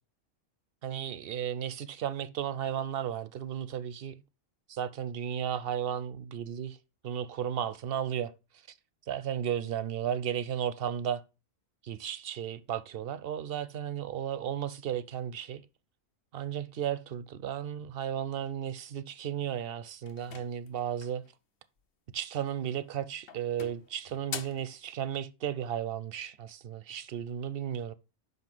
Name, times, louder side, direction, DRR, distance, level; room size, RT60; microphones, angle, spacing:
voice 1, 0.8-4.1 4.7-6.8 7.0-8.3 9.1-11.2 11.8-15.6 16.3-21.2 22.1-27.9, right 9 dB, 65° right, 0.6 m, -34 dB
sound 1, 20.1-21.3 22.5-22.9 23.3-24.7, left 7 dB, 50° left, 0.9 m, -44 dB
5.4 x 5.4 x 6.0 m
omnidirectional pair, 1.4 m